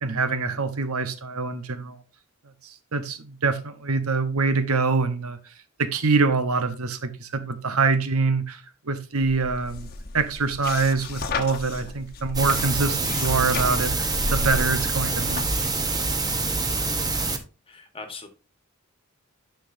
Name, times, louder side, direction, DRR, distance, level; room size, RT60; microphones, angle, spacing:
voice 1, 0.0-2.0 2.6-5.4 5.8-8.6 8.9-9.9 10.1-15.7, right 4 dB, 90° right, 1.1 m, -25 dB
sound 1, 9.2-16.0, left 3 dB, 45° left, 1.0 m, -34 dB
sound 2, 12.3-17.4, right 3 dB, 20° right, 1.0 m, -26 dB
voice 2, 17.7-18.3, left 3 dB, 25° left, 1.4 m, -40 dB
10.5 x 5.8 x 2.7 m
head